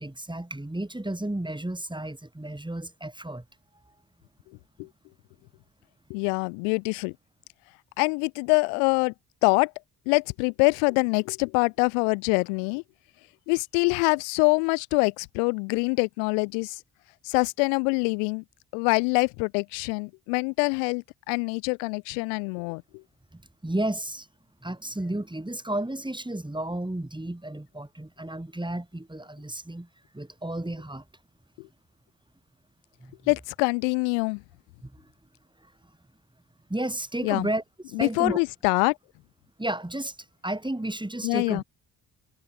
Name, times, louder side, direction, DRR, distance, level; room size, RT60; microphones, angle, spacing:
voice 1, 0.0-3.4 23.3-24.3 24.6-29.9 30.1-31.0 33.0-33.3 34.8-35.1 35.6-35.7 36.7-37.6 38.0-38.4 39.6-40.2 40.4-41.6, right 1 dB, 10° right, 3.4 m, -32 dB
voice 2, 6.1-7.1 8.0-9.1 9.4-9.7 10.1-12.8 13.5-16.8 17.2-18.4 18.7-22.8 33.3-34.4 37.2-37.5 38.0-39.0 41.2-41.6, left 40 dB or more, 85° left, 0.7 m, -25 dB
hypercardioid pair, 40°, 49 cm